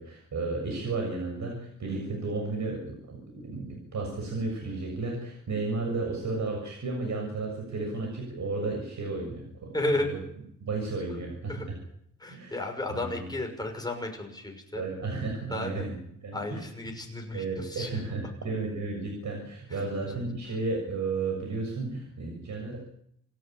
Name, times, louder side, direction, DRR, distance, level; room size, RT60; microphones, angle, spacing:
voice 1, 0.0-9.7 10.0-10.2 10.6-11.8 12.3-13.3 14.7-16.7 17.3-23.0, right 3 dB, 60° right, 2 dB, 6.9 m, -33 dB
voice 2, 9.7-10.1 11.5-11.7 12.2-14.8 15.5-15.9 16.3-17.9 20.0-20.1, left 1 dB, 10° left, 2 dB, 6.1 m, -33 dB
28.0 x 14.0 x 9.3 m, 0.71 s
wide cardioid pair, 155°, 33 cm